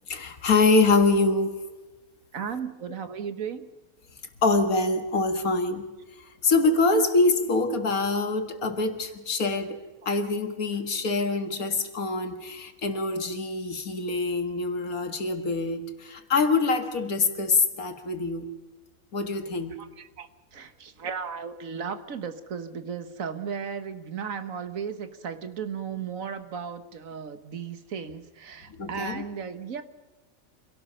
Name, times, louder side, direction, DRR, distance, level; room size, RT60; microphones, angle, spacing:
voice 1, 0.1-1.6 4.4-5.9 6.2-9.8 10.1-18.4 19.1-19.8 28.7-29.2, left 3 dB, 90° left, 7 dB, 2.2 m, -25 dB
voice 2, 2.3-3.7 20.0-29.8, right 6 dB, 70° right, 10 dB, 1.6 m, -35 dB
26.5 x 17.5 x 5.6 m, 1.2 s
omnidirectional pair, 1.5 m